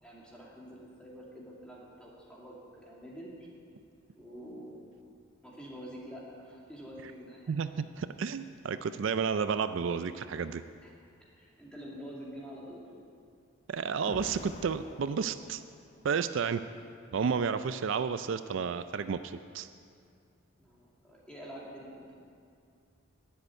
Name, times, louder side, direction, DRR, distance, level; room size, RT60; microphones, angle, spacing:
voice 1, 0.0-3.5 4.2-4.9 5.4-7.5 10.8-10.9 11.4-12.9 20.6-22.2, equal, 5° left, -5 dB, 2.3 m, -47 dB
voice 2, 7.5-10.6 13.7-15.6 16.0-16.6 17.1-19.7, right 6 dB, 65° right, 11 dB, 0.4 m, -31 dB
Explosion, 14.1-16.2, left 2 dB, 30° left, 0.4 m, -47 dB
10.5 x 7.9 x 9.7 m, 2.4 s
head